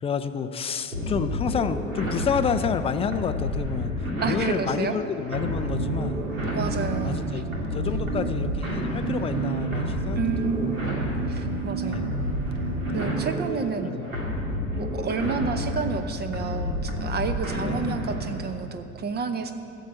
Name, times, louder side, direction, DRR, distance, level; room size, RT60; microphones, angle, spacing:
voice 1, 0.0-6.2 7.0-10.7 11.8-12.1 13.5-14.1 17.6-17.9, left 6 dB, 15° left, 10 dB, 0.5 m, -29 dB
sound 1, 0.9-18.5, left 1 dB, 80° right, 2.4 m, -30 dB
voice 2, 4.2-5.0 6.5-7.4 10.2-12.0 12.9-14.0 14.7-19.5, right 5 dB, 25° right, 8 dB, 0.9 m, -30 dB
sound 2, 5.3-13.5, right 8 dB, 50° right, 1.0 m, -33 dB
13.0 x 7.3 x 8.3 m, 2.7 s
figure-of-eight pair, 75°, 40 cm